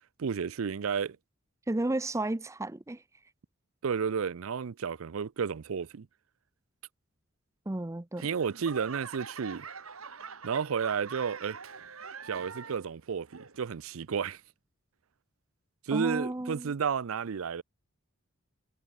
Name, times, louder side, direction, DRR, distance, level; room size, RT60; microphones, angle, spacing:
voice 1, 0.2-1.2 3.8-6.1 8.2-9.7 10.4-11.6 12.2-14.4 15.9-17.6, right 6 dB, 75° right, 0.5 m, -32 dB
voice 2, 1.7-3.0 7.7-8.3 15.9-16.7, right 2 dB, 15° right, 0.6 m, -32 dB
Laughter / Clapping / Crowd, 8.2-12.9 13.3-13.8 14.4-14.5, right 5 dB, 90° right, 2.4 m, -44 dB
head